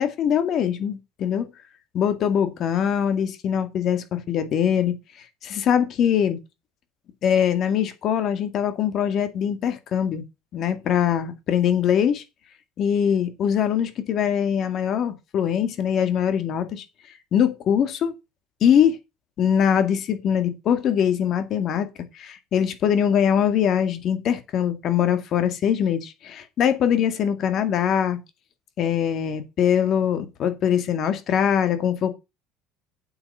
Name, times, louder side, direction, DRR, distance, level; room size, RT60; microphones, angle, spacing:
voice 1, 0.0-1.5 1.9-4.9 5.4-6.4 7.2-10.2 10.5-12.2 12.8-16.8 17.3-18.1 18.6-19.0 19.4-21.9 22.1-28.2 28.8-32.1, left 8 dB, 40° left, 2.1 m, -22 dB
8.7 x 8.0 x 5.6 m
cardioid pair, 155°, 0 cm